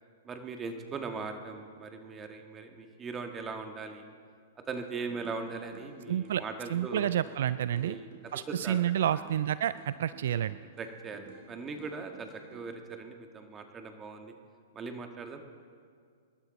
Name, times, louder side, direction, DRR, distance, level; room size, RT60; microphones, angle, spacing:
voice 1, 0.2-4.0 4.7-7.1 7.8-8.1 8.3-8.8 9.0-9.2 10.8-14.3 14.7-15.4, right 4 dB, 20° right, 5 dB, 1.6 m, -40 dB
sound 1, 4.7-5.4 5.7-7.4 7.7-9.4 9.7-11.5 11.8-12.6, right 5 dB, 45° right, 4.1 m, -52 dB
voice 2, 6.1-6.4 6.7-8.0 8.3-10.6, right 11 dB, 65° right, 16 dB, 0.3 m, -29 dB
25.5 x 12.5 x 4.0 m, 2.1 s
hypercardioid pair, 120°, 0 cm